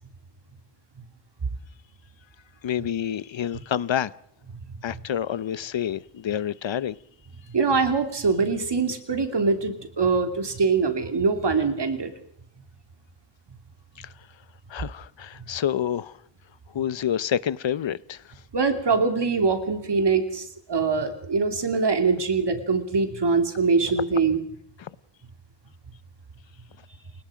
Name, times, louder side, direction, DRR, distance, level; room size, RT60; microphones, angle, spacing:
voice 1, 2.6-4.1 4.8-7.0 14.0-14.1 14.7-16.2 16.7-18.2 24.8-24.9, left 9 dB, 85° left, 0.8 m, -28 dB
voice 2, 7.5-12.1 18.5-24.4, right 4 dB, 65° right, 3.0 m, -23 dB
29.0 x 18.0 x 5.1 m
wide cardioid pair, 100°, 44 cm